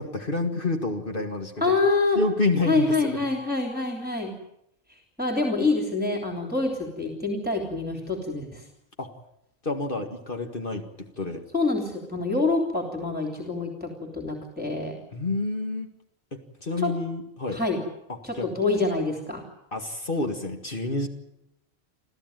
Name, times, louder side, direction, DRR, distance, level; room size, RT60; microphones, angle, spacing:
voice 1, 0.0-1.7 2.2-3.2 9.0-9.1 9.6-11.4 15.1-15.9 16.3-17.6 18.3-18.5 19.7-21.1, left 2 dB, 50° left, 4 dB, 2.0 m, -29 dB
voice 2, 1.6-2.2 2.7-4.3 4.9-8.7 11.5-15.0 16.8-16.9 17.5-17.8 18.2-19.5, left 3 dB, 10° right, 2 dB, 3.2 m, -26 dB
27.5 x 15.0 x 9.2 m, 0.83 s
omnidirectional pair, 1.2 m